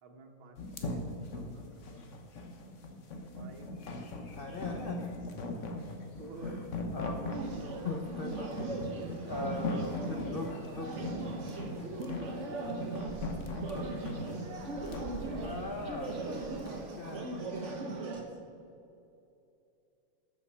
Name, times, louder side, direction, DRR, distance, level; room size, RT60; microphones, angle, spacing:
voice 1, 0.0-2.2 3.4-3.8 5.9-6.6 7.6-8.1 9.3-9.5 11.8-12.4 13.7-14.2 15.3-15.6 16.4-17.1 18.1-18.4, right 2 dB, 90° right, 3 dB, 2.2 m, -51 dB
sound 1, 0.6-16.8, left 2 dB, 45° left, 1.2 m, -40 dB
voice 2, 4.3-5.4 6.4-7.4 7.8-8.8 9.2-11.1 13.7-13.9 14.3-14.4 14.8-16.2 17.0-17.3, left 3 dB, 75° left, 3 dB, 0.5 m, -41 dB
sound 2, 7.3-18.2, right 3 dB, 40° right, 1.4 m, -39 dB
12.5 x 7.2 x 5.7 m, 2.7 s
omnidirectional pair, 2.2 m